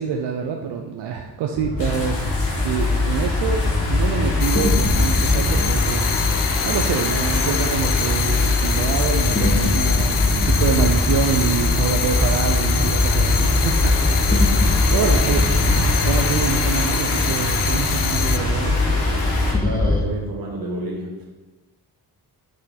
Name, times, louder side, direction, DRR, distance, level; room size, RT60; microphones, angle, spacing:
voice 1, 0.0-6.0 6.6-14.2 14.6-18.8, right 7 dB, 90° right, 3 dB, 0.6 m, -26 dB
sound 1, 1.6-20.0, left 2 dB, 20° left, 1.0 m, -21 dB
sound 2, 1.8-19.5, left 2 dB, 85° left, 1.9 m, -29 dB
sound 3, 4.4-18.4, left 10 dB, 55° left, 0.5 m, -27 dB
voice 2, 19.6-21.1, right 1 dB, 60° right, -2 dB, 2.1 m, -29 dB
5.9 x 5.1 x 4.1 m, 1.1 s
cardioid pair, 100°, 40 cm